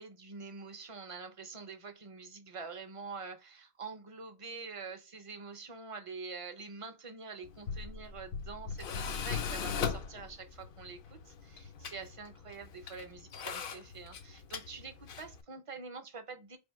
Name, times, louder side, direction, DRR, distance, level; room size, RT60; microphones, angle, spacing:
voice 1, 0.0-16.6, right 4 dB, 40° right, 0.5 m, -46 dB
Tools, 7.4-15.4, left 6 dB, 65° left, 0.7 m, -40 dB
3.5 x 2.5 x 4.5 m
omnidirectional pair, 1.1 m